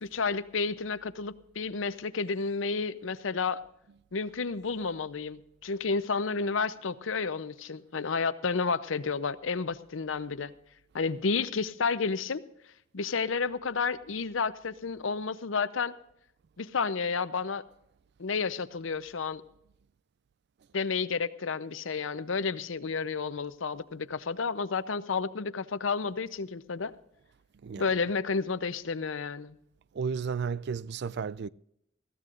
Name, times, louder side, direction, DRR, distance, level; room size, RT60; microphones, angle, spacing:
voice 1, 0.0-3.6 4.1-10.5 10.9-12.4 12.9-15.9 16.6-17.6 18.2-19.4 20.7-26.9 27.8-29.5, left 4 dB, 85° left, 0.7 m, -31 dB
voice 2, 29.9-31.5, right 6 dB, 60° right, 0.4 m, -33 dB
20.5 x 15.0 x 2.5 m
head